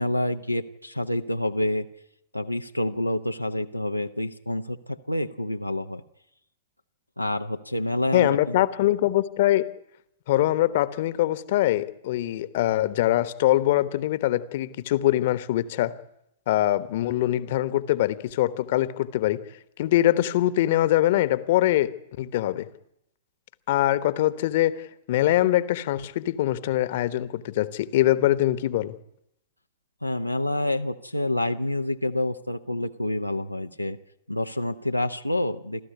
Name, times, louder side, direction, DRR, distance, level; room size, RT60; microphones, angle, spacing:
voice 1, 0.0-1.9 2.3-6.0 7.2-8.6 30.0-34.0 34.3-35.8, left 1 dB, 90° left, 6 dB, 0.8 m, -28 dB
voice 2, 8.1-9.7 10.3-15.9 16.5-19.4 19.8-22.7 23.7-28.9, left 14 dB, 50° left, 15 dB, 1.2 m, -23 dB
28.0 x 13.5 x 9.7 m, 0.80 s
figure-of-eight pair, 100°, 0 cm